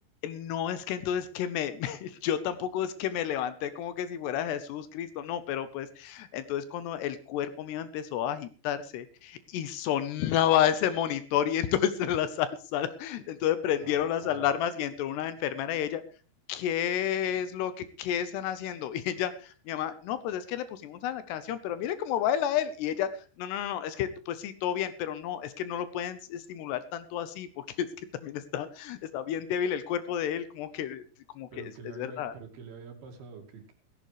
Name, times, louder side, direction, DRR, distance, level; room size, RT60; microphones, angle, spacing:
voice 1, 0.2-16.0 16.5-23.1 23.4-27.9 28.2-31.0 31.4-32.3, left 10 dB, 75° left, 13 dB, 2.9 m, -31 dB
voice 2, 13.8-14.5 31.5-33.7, right 5 dB, 60° right, 4 dB, 3.9 m, -46 dB
16.0 x 16.0 x 3.2 m, 0.35 s
omnidirectional pair, 5.1 m